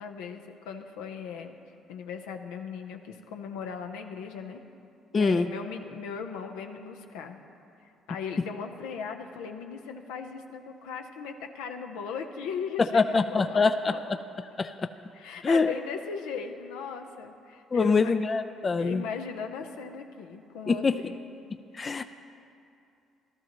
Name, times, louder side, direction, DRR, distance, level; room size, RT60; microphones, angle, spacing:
voice 1, 0.0-1.6 1.9-4.6 5.1-7.4 7.8-14.2 15.1-18.1 18.8-21.2, left 6 dB, 85° left, 5 dB, 0.7 m, -38 dB
voice 2, 5.1-5.5 12.9-13.9 14.6-14.7 15.4-15.7 17.7-19.0 20.7-21.0 21.7-22.0, left 4 dB, 35° left, 10 dB, 0.4 m, -24 dB
15.0 x 13.0 x 3.0 m, 2.6 s
supercardioid pair, 65°, 0 cm